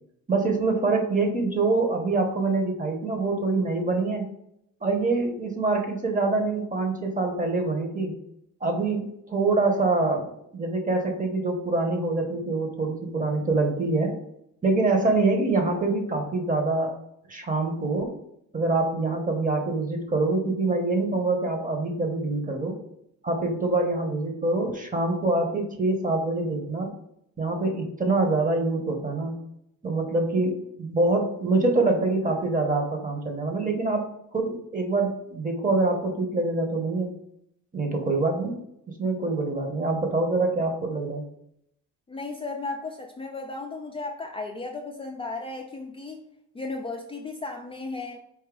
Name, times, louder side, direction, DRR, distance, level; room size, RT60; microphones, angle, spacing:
voice 1, 0.3-4.3 4.8-8.1 8.6-14.1 14.6-17.0 17.3-18.1 18.5-22.8 23.2-26.9 27.4-29.3 29.8-37.1 37.7-38.6 39.0-41.2, right 3 dB, 25° right, 3 dB, 1.2 m, -25 dB
voice 2, 42.1-46.2 46.5-48.2, left 3 dB, 20° left, 1 dB, 0.5 m, -35 dB
4.7 x 2.7 x 3.8 m, 0.76 s
cardioid pair, 90°, 30 cm